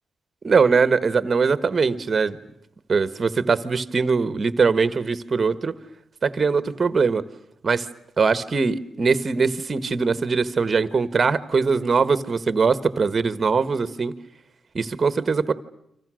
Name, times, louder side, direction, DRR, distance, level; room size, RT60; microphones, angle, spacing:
voice 1, 0.4-2.4 2.9-5.7 6.2-7.2 7.6-7.9 8.2-14.1 14.7-15.5, right 5 dB, 30° right, 14 dB, 1.4 m, -21 dB
30.0 x 26.0 x 6.4 m, 0.78 s
wide cardioid pair, 175°, 0 cm